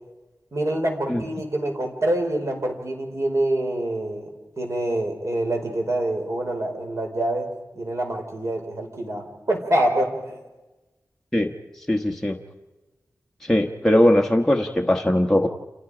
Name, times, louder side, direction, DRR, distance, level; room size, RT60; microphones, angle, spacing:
voice 1, 0.5-4.3 4.6-7.5 7.7-10.4, right 1 dB, 60° right, 3 dB, 4.8 m, -26 dB
voice 2, 11.9-12.4 13.5-15.5, left 1 dB, 10° left, 2 dB, 1.3 m, -20 dB
29.0 x 28.0 x 5.1 m, 1.1 s
wide cardioid pair, 85°, 6 cm